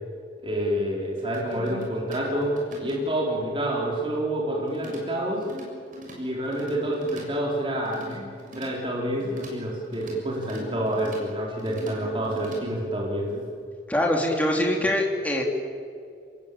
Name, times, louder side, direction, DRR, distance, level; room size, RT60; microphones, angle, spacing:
voice 1, 0.4-5.4 6.2-8.2 8.5-13.4, right 1 dB, 30° right, -3 dB, 4.3 m, -28 dB
sound 1, 1.2-3.3 4.7-5.0 5.3-6.2 6.4-7.3 7.8-8.7 9.2-9.5 9.8-11.2 11.6-12.6, right 1 dB, 50° right, 6.9 m, -43 dB
voice 2, 13.9-15.4, left 1 dB, 10° left, 0 dB, 3.3 m, -23 dB
26.5 x 21.0 x 8.7 m, 2.4 s
head